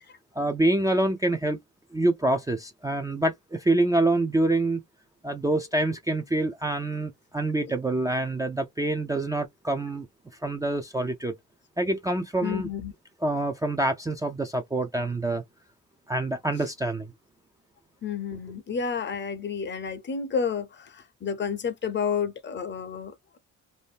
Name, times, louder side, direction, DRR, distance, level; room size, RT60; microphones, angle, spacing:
voice 1, 0.3-1.6 1.9-4.8 5.2-10.1 10.4-11.3 11.8-12.7 13.2-15.4 16.1-17.1 18.3-18.4, right 2 dB, 10° right, 0.3 m, -26 dB
voice 2, 12.4-12.9 18.0-23.4, left 6 dB, 40° left, 0.6 m, -30 dB
2.7 x 2.0 x 3.3 m
cardioid pair, 90°, 30 cm